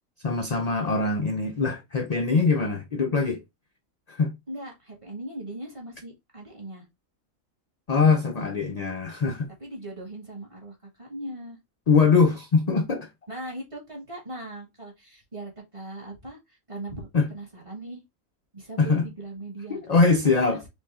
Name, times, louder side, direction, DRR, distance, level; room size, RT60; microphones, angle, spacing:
voice 1, 0.2-3.4 4.1-4.3 7.9-9.5 11.9-13.1 17.1-17.3 18.8-19.1 19.7-20.6, left 4 dB, 50° left, 0.4 m, -22 dB
voice 2, 4.5-6.8 9.6-11.6 13.3-18.0 18.5-19.8 20.2-20.7, right 1 dB, 25° right, 1.6 m, -39 dB
5.0 x 2.7 x 3.5 m
omnidirectional pair, 1.4 m